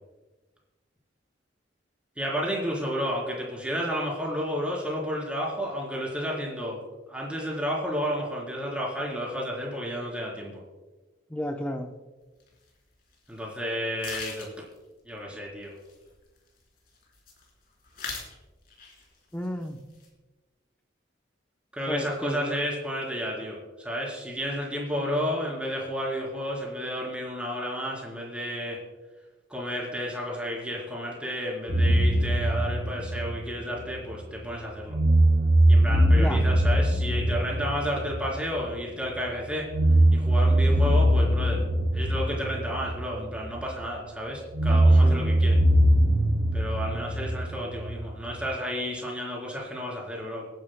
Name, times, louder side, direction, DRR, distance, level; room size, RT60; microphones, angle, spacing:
voice 1, 2.2-6.8 7.1-10.6 13.3-14.5 15.1-15.7 21.7-28.8 29.5-35.0 35.7-39.7 40.1-41.7 41.9-45.6 46.5-50.5, equal, 5° right, -3 dB, 3.7 m, -31 dB
voice 2, 11.3-11.9 19.3-19.8 21.9-22.5 25.0-25.3 36.1-36.4 45.0-45.2, equal, 10° left, 2 dB, 0.8 m, -33 dB
sound 1, 12.4-12.5 13.1-13.3 13.6-13.7 14.0-14.8 15.6-16.6 16.9-17.5 17.8-18.3 18.7-19.2 19.4-20.1, left 4 dB, 50° left, 4.1 m, -39 dB
sound 2, 31.7-34.5 34.9-39.1 39.7-43.8 44.5-48.5, right 1 dB, 60° right, 2.8 m, -22 dB
27.0 x 10.5 x 2.2 m, 1.2 s
head